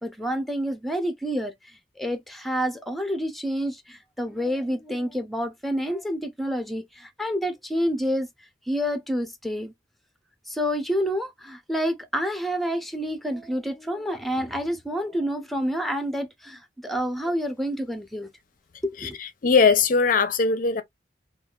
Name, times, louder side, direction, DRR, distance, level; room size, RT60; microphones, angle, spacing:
voice 1, 0.0-1.5 2.0-8.3 8.7-9.7 10.5-18.3 19.0-19.2, equal, ahead, 0.5 m, -28 dB
voice 2, 19.4-20.8, left 5 dB, 50° left, 0.5 m, -19 dB
5.2 x 2.3 x 2.3 m
head